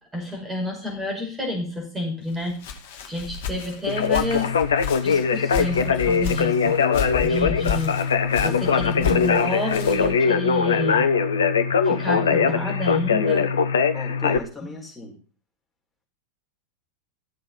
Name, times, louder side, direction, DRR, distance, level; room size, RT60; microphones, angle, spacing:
voice 1, 0.1-2.6 3.1-4.6 5.0-6.8 7.2-8.0 8.4-11.1 11.8-13.5, left 1 dB, 10° right, 1 dB, 5.4 m, -29 dB
Walk footsteps, 2.3-10.2, left 7 dB, 50° left, 2.4 m, -33 dB
Conversation, 3.9-14.4, left 6 dB, 65° left, 1.0 m, -21 dB
voice 2, 8.3-9.0 13.9-15.2, left 2 dB, 10° left, -1 dB, 5.0 m, -37 dB
14.5 x 7.5 x 5.5 m, 0.39 s
figure-of-eight pair, 90°, 0 cm